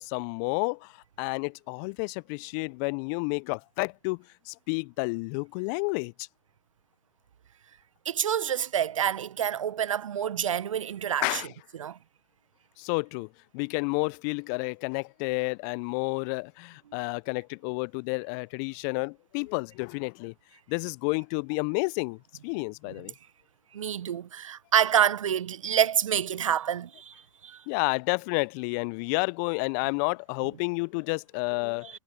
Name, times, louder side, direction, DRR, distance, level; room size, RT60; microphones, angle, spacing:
voice 1, 0.0-6.3 11.2-11.5 12.8-20.3 20.7-23.1 27.7-32.0, left 33 dB, 35° left, 0.4 m, -30 dB
voice 2, 8.0-11.4 11.8-12.0 23.7-27.6, right 9 dB, 75° right, 0.9 m, -27 dB
hypercardioid pair, 110°, 17 cm